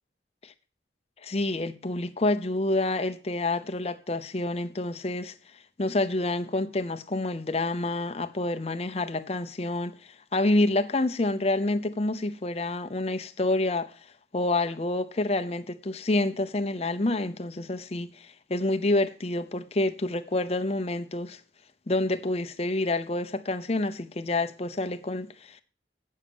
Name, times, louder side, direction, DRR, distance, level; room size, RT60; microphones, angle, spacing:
voice 1, 1.2-21.4 21.9-25.6, left 2 dB, 35° left, 0.6 m, -28 dB
8.5 x 6.5 x 6.9 m
head